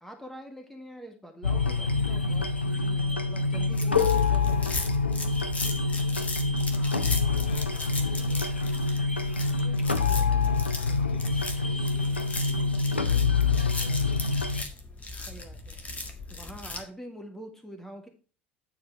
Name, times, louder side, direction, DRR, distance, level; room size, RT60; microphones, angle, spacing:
voice 1, 0.0-4.9 15.3-15.8 16.3-18.1, equal, 5° left, 4 dB, 1.7 m, -45 dB
sound 1, 1.4-14.6, left 4 dB, 90° left, 0.6 m, -26 dB
sound 2, 3.7-16.8, left 3 dB, 25° left, 1.7 m, -38 dB
voice 2, 6.7-8.7 9.3-14.1, left 3 dB, 70° left, -1 dB, 4.0 m, -51 dB
10.0 x 4.7 x 4.4 m, 0.36 s
figure-of-eight pair, 65°, 6 cm